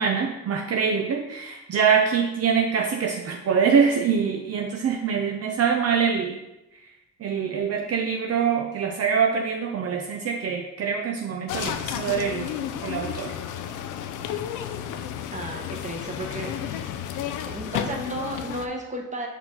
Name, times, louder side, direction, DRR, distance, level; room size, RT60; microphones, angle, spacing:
voice 1, 0.0-6.4 7.2-12.5 12.8-13.3, right 6 dB, 55° right, 2 dB, 0.6 m, -24 dB
sound 1, 11.5-18.7, left 9 dB, 90° left, 0.5 m, -32 dB
voice 2, 15.3-17.0 17.5-19.3, right 1 dB, 25° right, 2 dB, 1.3 m, -34 dB
5.9 x 4.6 x 4.0 m, 0.95 s
cardioid pair, 90°, 30 cm